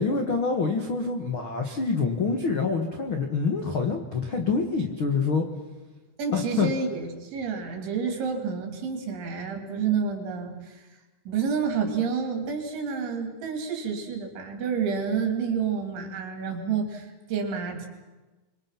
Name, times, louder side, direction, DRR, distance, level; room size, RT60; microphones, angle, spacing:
voice 1, 0.0-5.4 6.3-6.7, left 4 dB, 75° left, 3 dB, 1.1 m, -26 dB
voice 2, 6.2-10.8 11.3-17.9, right 6 dB, 80° right, 3 dB, 5.6 m, -29 dB
26.5 x 24.0 x 6.0 m, 1.2 s
omnidirectional pair, 5.3 m